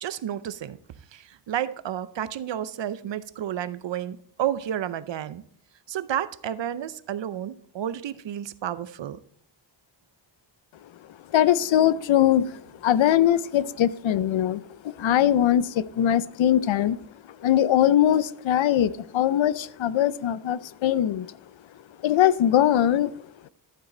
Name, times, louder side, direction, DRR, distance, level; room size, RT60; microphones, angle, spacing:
voice 1, 0.0-0.8 1.1-5.4 5.9-9.2, right 10 dB, 75° right, 0.7 m, -31 dB
voice 2, 11.3-14.6 15.0-17.0 17.4-21.3 22.0-23.1, left 11 dB, 90° left, 0.6 m, -21 dB
12.0 x 7.2 x 3.8 m
wide cardioid pair, 140°, 45 cm